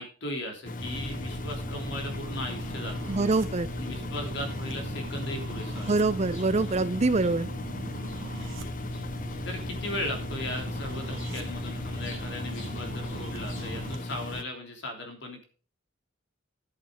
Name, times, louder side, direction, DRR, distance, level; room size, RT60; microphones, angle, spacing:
voice 1, 0.0-3.1 3.7-5.9 8.3-8.9 9.4-15.4, left 1 dB, 60° left, 3 dB, 3.3 m, -37 dB
Engine, 0.7-14.4, left 2 dB, 40° left, 0.8 m, -37 dB
sound 1, 0.8-14.0, right 1 dB, 75° right, 1.9 m, -40 dB
voice 2, 3.1-3.7 5.9-7.5, right 3 dB, 35° right, 16 dB, 0.5 m, -25 dB
sound 2, 5.2-14.4, left 2 dB, 90° left, 5.8 m, -53 dB
10.5 x 8.7 x 5.2 m, 0.39 s
head